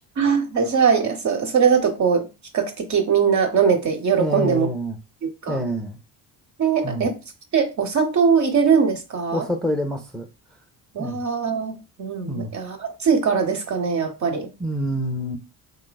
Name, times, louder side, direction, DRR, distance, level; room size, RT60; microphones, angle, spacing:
voice 1, 0.2-2.3 2.5-4.7 5.4-5.6 6.6-7.2 7.5-9.4 10.9-14.5, right 6 dB, 45° right, 0.8 m, -21 dB
voice 2, 4.2-5.0 5.5-6.0 6.8-7.1 9.3-10.3 11.0-11.2 12.3-12.5 14.6-15.4, equal, ahead, 0.4 m, -26 dB
3.3 x 3.0 x 2.2 m
supercardioid pair, 75°, 41 cm